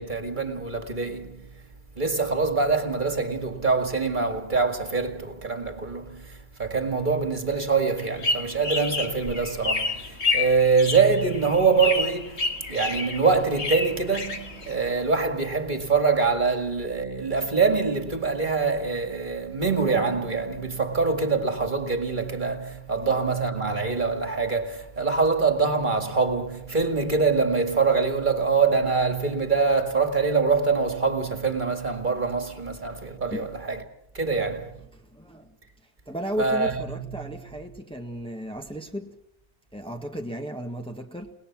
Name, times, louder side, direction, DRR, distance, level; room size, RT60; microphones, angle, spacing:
voice 1, 0.0-1.5 2.0-33.8 34.1-34.7 36.4-36.7, right 4 dB, 45° right, 2.2 m, -24 dB
sound 1, 8.0-15.0, left 3 dB, 85° left, 2.1 m, -29 dB
voice 2, 34.9-35.6 36.0-39.2 39.7-41.3, equal, 5° left, 1.6 m, -35 dB
30.0 x 19.5 x 6.0 m
omnidirectional pair, 1.1 m